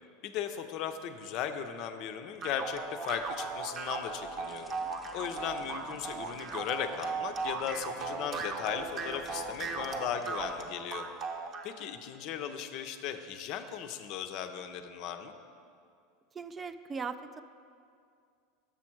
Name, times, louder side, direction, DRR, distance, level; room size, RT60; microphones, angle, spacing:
voice 1, 0.2-4.8 5.1-11.1 11.6-15.3, left 8 dB, 55° left, 8 dB, 0.5 m, -37 dB
sound 1, 2.4-11.7, right 4 dB, 40° right, 0.7 m, -37 dB
sound 2, 4.4-10.8, equal, ahead, 0.7 m, -55 dB
voice 2, 16.3-17.4, right 5 dB, 25° right, 11 dB, 0.3 m, -39 dB
6.9 x 6.1 x 4.5 m, 2.3 s
hypercardioid pair, 95°, 0 cm